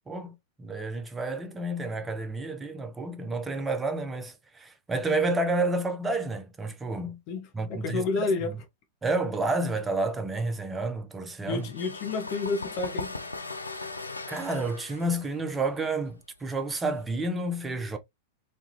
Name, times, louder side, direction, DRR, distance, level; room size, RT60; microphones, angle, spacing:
voice 1, 0.6-7.2 7.5-8.2 9.0-11.7 14.3-18.0, right 2 dB, 15° right, 0.5 m, -30 dB
voice 2, 7.3-8.5 11.5-13.1, left 3 dB, 45° left, 0.8 m, -30 dB
sound 1, 11.5-17.0, left 3 dB, 85° left, 0.4 m, -39 dB
3.2 x 2.3 x 2.8 m
figure-of-eight pair, 95°, 0 cm